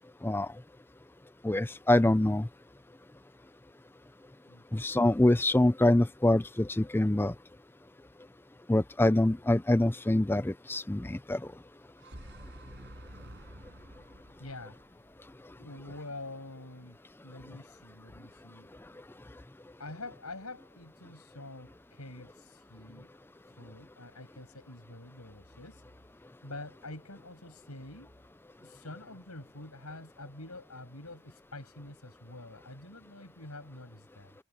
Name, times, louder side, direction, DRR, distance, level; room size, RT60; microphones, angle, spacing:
voice 1, 1.4-2.5 4.7-7.3 8.7-11.4, left 1 dB, 10° left, 0.4 m, -25 dB
sound 1, 11.7-15.9, right 1 dB, 55° right, 5.3 m, -50 dB
voice 2, 14.4-14.8 15.6-18.7 19.8-23.1 23.5-28.1 28.6-34.4, left 2 dB, 85° left, 7.8 m, -46 dB
head